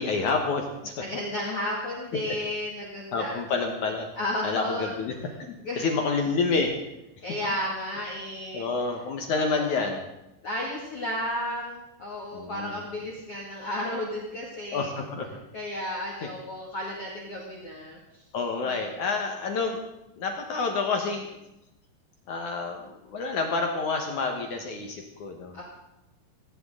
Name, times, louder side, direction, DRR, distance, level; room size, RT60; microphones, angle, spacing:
voice 1, 0.0-0.9 2.3-2.4 3.1-4.1 4.4-6.7 8.5-10.1 12.3-12.8 14.7-15.3 18.3-19.8 20.2-21.3 22.3-25.6, left 4 dB, 65° left, 3 dB, 2.1 m, -28 dB
voice 2, 1.0-3.4 4.1-4.9 5.6-5.9 7.2-8.7 9.3-9.9 10.4-14.9 15.5-18.0 18.6-19.1 25.5-25.6, left 1 dB, 40° left, -3 dB, 2.4 m, -33 dB
18.0 x 17.5 x 3.8 m, 0.91 s
omnidirectional pair, 5.1 m